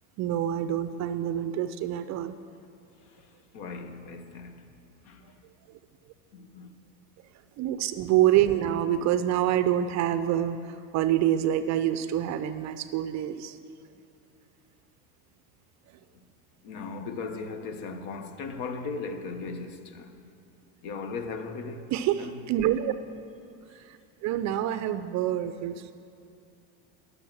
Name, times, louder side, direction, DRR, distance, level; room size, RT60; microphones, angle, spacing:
voice 1, 0.2-2.3 7.6-13.6 21.9-22.9 24.2-25.9, right 11 dB, 40° right, 0.4 m, -26 dB
voice 2, 3.5-4.7 5.1-5.2 6.3-6.7 16.6-20.2 20.8-21.8 22.2-22.4, left 4 dB, 60° left, 1.0 m, -37 dB
11.5 x 6.5 x 6.2 m
supercardioid pair, 105°, 44 cm